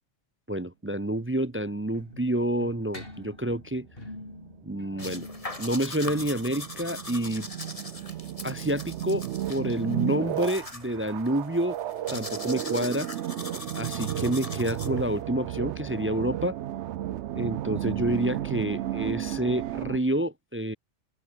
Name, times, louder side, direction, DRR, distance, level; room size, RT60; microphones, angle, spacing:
voice 1, 0.5-3.9 4.6-5.3 5.6-7.5 8.4-11.8 12.1-13.1 13.7-16.6 17.3-20.8, right 1 dB, 15° right, 0.4 m, -28 dB
sound 1, 1.1-8.8 9.9-17.3 17.6-17.7 17.9-18.0 18.7-18.8, left 1 dB, 50° left, 6.2 m, -48 dB
sound 2, 3.6-20.0, right 13 dB, 75° right, 0.9 m, -34 dB
sound 3, 5.0-15.2, left 2 dB, 30° left, 2.6 m, -41 dB
open air
omnidirectional pair, 1.2 m